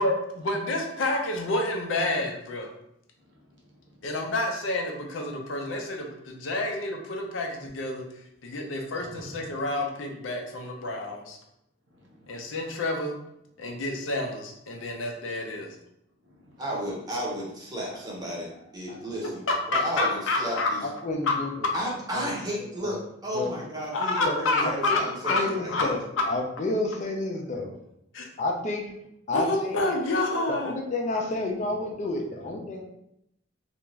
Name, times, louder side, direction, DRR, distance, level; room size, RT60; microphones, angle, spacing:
voice 1, 0.0-2.7 4.0-8.0 8.4-11.4 12.3-13.1 13.6-15.8 19.5-20.7 21.3-21.4 23.9-25.4 25.7-25.8 29.3-30.8, left 2 dB, 85° left, 2 dB, 0.5 m, -29 dB
voice 2, 3.2-3.9 8.5-8.7 9.1-9.6 12.0-12.4 13.7-13.8 16.2-16.6, equal, 70° right, -2 dB, 0.8 m, -51 dB
voice 3, 16.6-19.4 19.7-20.8 21.7-25.9, equal, 20° right, -4 dB, 0.7 m, -33 dB
voice 4, 20.5-21.7 22.1-22.3 22.6-23.0 23.3-23.5 24.3-26.0 26.3-27.7 28.4-28.8 29.3-29.8 30.5-32.8, left 2 dB, 40° left, 1 dB, 0.4 m, -30 dB
2.5 x 2.2 x 3.0 m, 0.78 s
head